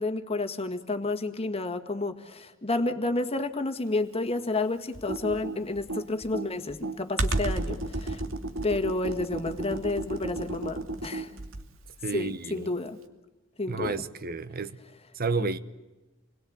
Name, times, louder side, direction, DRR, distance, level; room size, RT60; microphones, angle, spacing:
voice 1, 0.0-8.2 8.6-11.3 12.1-13.0 13.6-14.0 15.4-15.5, left 2 dB, 30° left, 1.8 m, -30 dB
Computer keyboard, 4.9-11.8, right 2 dB, 75° right, 2.6 m, -33 dB
voice 2, 12.0-12.7 13.7-14.8 15.2-15.6, right 3 dB, 50° right, 1.0 m, -31 dB
28.5 x 21.5 x 8.8 m
head